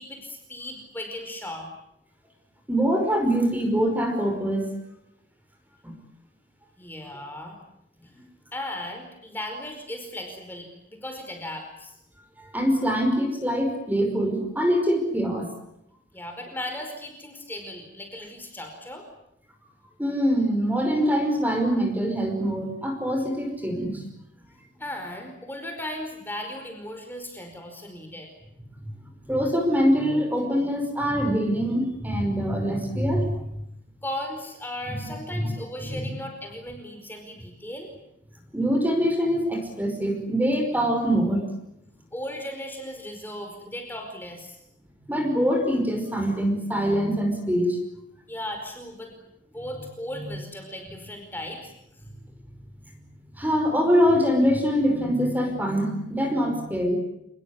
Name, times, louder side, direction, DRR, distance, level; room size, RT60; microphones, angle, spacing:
voice 1, 0.0-1.7 6.8-7.6 8.5-12.0 16.1-19.1 24.8-28.3 34.0-37.9 42.1-44.6 48.3-49.1 49.5-51.7, left 1 dB, 10° left, 4 dB, 4.9 m, -36 dB
voice 2, 2.7-4.7 5.8-5.9 12.4-15.5 20.0-24.0 29.3-33.5 34.9-35.5 35.8-36.1 38.5-41.4 45.1-47.8 53.4-56.9, equal, 10° right, 5 dB, 5.3 m, -24 dB
28.5 x 20.5 x 9.8 m, 0.80 s
head